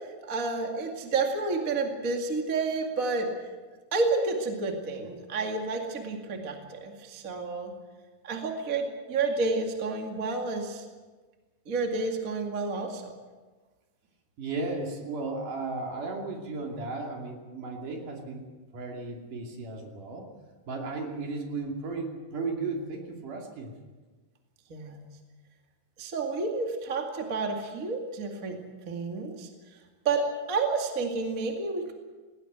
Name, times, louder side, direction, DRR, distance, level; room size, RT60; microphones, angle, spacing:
voice 1, 0.0-3.3 3.9-7.7 8.2-10.8 11.7-13.1 24.7-25.0 26.0-28.6 28.9-29.8 30.0-31.9, right 3 dB, 30° right, 2 dB, 1.9 m, -30 dB
voice 2, 14.4-18.5 18.7-20.3 20.7-23.7, right 3 dB, 55° right, 1 dB, 4.1 m, -35 dB
19.5 x 18.0 x 8.2 m, 1.3 s
omnidirectional pair, 4.4 m